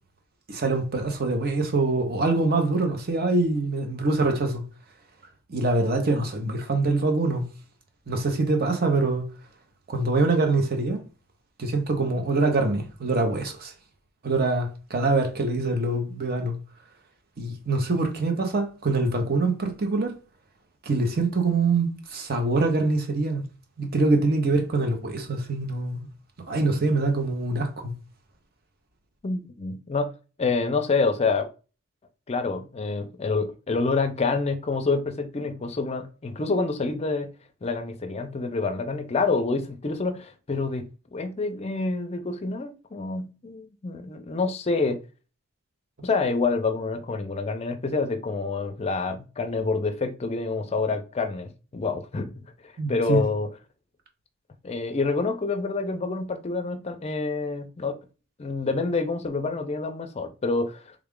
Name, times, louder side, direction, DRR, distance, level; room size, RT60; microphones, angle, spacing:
voice 1, 0.5-4.6 5.5-7.4 8.1-9.3 9.9-11.0 11.6-13.7 14.2-16.6 17.4-20.2 20.8-23.4 23.8-26.1 26.5-27.9 52.8-53.2, right 3 dB, 45° right, 0.7 m, -24 dB
voice 2, 29.2-30.1 30.4-31.5 32.3-37.3 37.6-40.8 41.1-45.0 46.0-53.5 54.6-58.0 58.4-60.9, left 3 dB, 30° left, 0.5 m, -27 dB
3.5 x 2.4 x 3.6 m
head